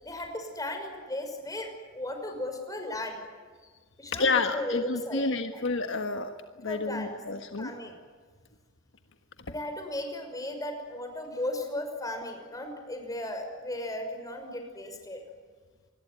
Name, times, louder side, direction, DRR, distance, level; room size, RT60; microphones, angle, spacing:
voice 1, 0.0-3.2 4.0-5.6 6.6-7.1 7.6-7.9 9.5-15.2, left 1 dB, 15° left, 5 dB, 6.0 m, -36 dB
voice 2, 4.1-6.3 6.6-7.7, left 3 dB, 65° left, 6 dB, 1.6 m, -29 dB
27.0 x 21.5 x 9.5 m, 1.5 s
head